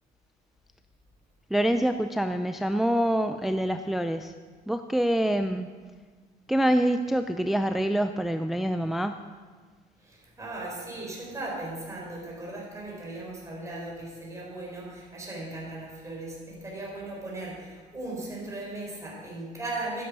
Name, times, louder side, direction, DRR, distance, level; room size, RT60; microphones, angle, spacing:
voice 1, 1.5-4.3 4.7-5.7 6.5-9.2, right 1 dB, ahead, 8 dB, 0.4 m, -26 dB
voice 2, 10.0-20.0, right 2 dB, 20° right, -3 dB, 4.4 m, -37 dB
12.0 x 8.7 x 5.3 m, 1.5 s
cardioid pair, 110°, 17 cm